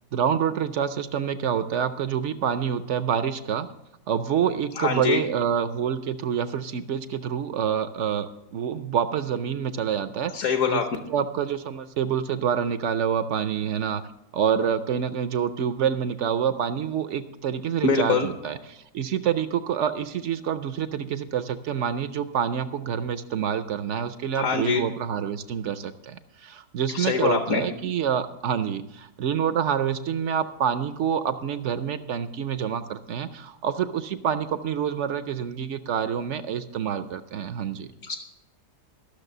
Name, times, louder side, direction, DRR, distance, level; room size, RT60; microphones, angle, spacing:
voice 1, 0.1-3.7 4.1-10.8 11.1-14.0 14.3-37.9, right 8 dB, 65° right, 11 dB, 0.7 m, -27 dB
voice 2, 4.8-5.2 10.3-10.8 17.8-18.3 24.3-24.8 26.9-27.6 38.0-38.2, left 5 dB, 65° left, 6 dB, 1.2 m, -23 dB
14.0 x 6.5 x 6.6 m, 0.88 s
omnidirectional pair, 1.7 m